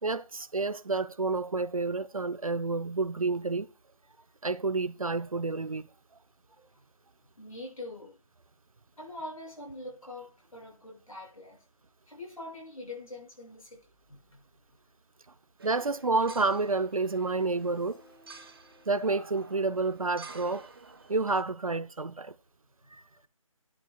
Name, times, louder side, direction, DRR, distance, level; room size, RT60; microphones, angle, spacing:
voice 1, 0.0-3.7 4.4-5.9 15.6-18.0 18.9-20.7 21.1-22.3 22.9-23.0, right 3 dB, 75° right, 0.7 m, -29 dB
voice 2, 7.4-8.2 9.0-11.7 12.1-14.4 22.8-22.9, left 2 dB, 75° left, 7.0 m, -44 dB
sound 1, 15.6-21.4, right 4 dB, 40° right, 1.0 m, -50 dB
sound 2, 16.7-20.8, equal, 45° left, 3.7 m, -60 dB
13.5 x 11.0 x 2.3 m
figure-of-eight pair, 160°, 18 cm